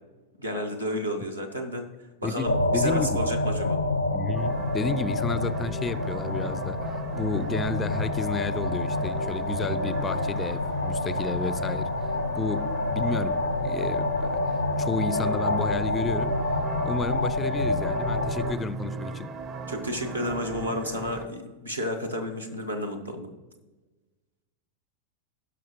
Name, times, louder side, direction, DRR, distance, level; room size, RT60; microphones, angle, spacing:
voice 1, 0.4-1.9 2.2-3.8 19.7-23.3, equal, 85° right, 1.2 m, -31 dB
voice 2, 2.2-3.1 4.1-11.9 12.3-14.4 14.8-16.4 16.8-19.3, left 4 dB, 20° left, 0.4 m, -32 dB
sound 1, 2.5-18.5, left 2 dB, 85° left, 0.5 m, -28 dB
sound 2, 4.3-21.3, right 4 dB, 30° right, 0.6 m, -38 dB
18.0 x 6.0 x 3.0 m
figure-of-eight pair, 90°, 0 cm